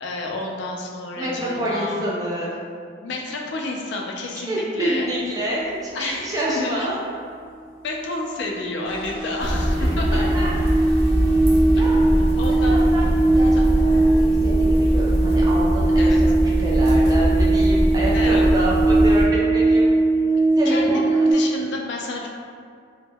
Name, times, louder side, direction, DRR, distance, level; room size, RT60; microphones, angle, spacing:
voice 1, 0.0-2.0 3.0-5.1 5.9-6.9 7.8-10.2 11.7-12.0 12.4-12.8 13.4-13.7 16.0-16.2 18.1-18.5 20.3-22.3, left 2 dB, 60° left, 0 dB, 0.3 m, -30 dB
voice 2, 1.2-2.5 4.3-7.0 9.8-10.5 11.7-12.0 12.5-13.1 13.3-19.9 20.6-21.7, right 1 dB, 20° right, -6 dB, 0.3 m, -28 dB
sound 1, 7.8-7.9 8.1-21.3, right 2 dB, 40° left, 0.7 m, -20 dB
sound 2, 8.8-15.6, right 1 dB, 90° right, 0.8 m, -41 dB
sound 3, 9.4-19.2, equal, 50° right, 0.7 m, -22 dB
2.1 x 2.1 x 3.3 m, 2.2 s
head